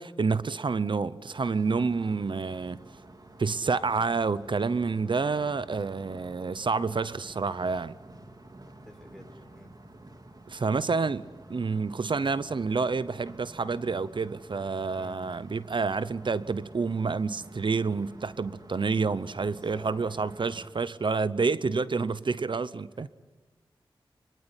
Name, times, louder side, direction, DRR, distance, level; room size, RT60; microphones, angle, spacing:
voice 1, 0.0-2.8 3.4-8.0 10.5-11.2 11.5-23.1, right 4 dB, 60° right, 16 dB, 0.8 m, -28 dB
sound 1, 1.2-20.7, right 1 dB, 45° right, 3.1 m, -49 dB
voice 2, 8.6-9.7 14.9-15.4 19.4-19.9 22.9-23.1, left 1 dB, 5° left, 1 dB, 6.5 m, -52 dB
25.0 x 24.0 x 9.9 m, 1.3 s
wide cardioid pair, 60°, 9 cm